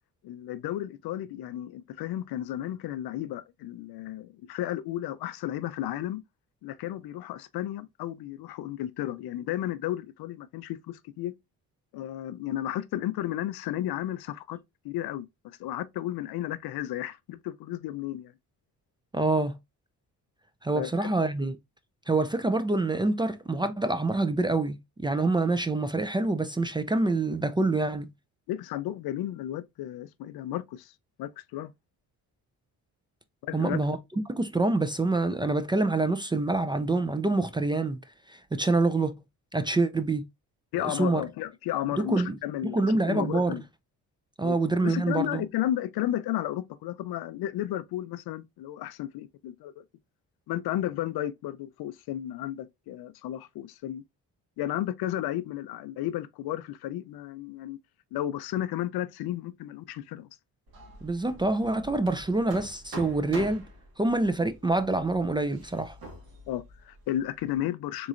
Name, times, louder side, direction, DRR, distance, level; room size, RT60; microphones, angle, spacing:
voice 1, 0.2-6.2 6.6-11.3 11.9-14.6 14.8-15.3 15.6-18.3 20.7-21.1 28.5-30.9 31.2-31.7 33.4-33.8 40.7-42.8 43.1-43.6 44.4-44.6 44.8-49.8 50.5-54.0 54.6-57.8 58.1-60.3 66.5-68.1, left 13 dB, 75° left, 0.5 m, -33 dB
voice 2, 19.1-19.6 20.6-21.6 22.1-28.1 33.5-34.0 34.3-38.0 38.3-39.1 39.5-40.2 40.8-41.2 42.0-42.4 42.7-43.6 44.4-45.4 61.0-63.7 64.0-66.0, right 2 dB, 15° right, 0.3 m, -26 dB
Hammer, 60.7-67.6, right 1 dB, 70° right, 1.7 m, -45 dB
3.8 x 3.0 x 2.4 m
cardioid pair, 80°, 37 cm